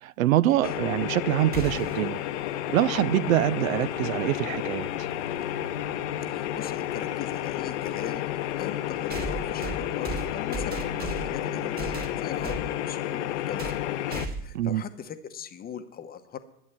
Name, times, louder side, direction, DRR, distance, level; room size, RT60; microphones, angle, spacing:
voice 1, 0.0-2.2 2.7-5.1 14.5-14.8, right 14 dB, 60° right, 0.6 m, -25 dB
sound 1, 0.6-14.3, left 12 dB, 50° left, 0.8 m, -31 dB
sound 2, 1.5-2.1 4.2-4.3 5.4-5.5 9.1-11.4 11.8-12.7 13.6-13.8 14.1-14.6, right 3 dB, 20° right, 1.9 m, -35 dB
voice 2, 6.3-8.2 8.6-11.9 12.2-13.8 14.4-16.4, left 8 dB, 20° left, 0.9 m, -40 dB
11.5 x 8.2 x 7.4 m
figure-of-eight pair, 95°, 46 cm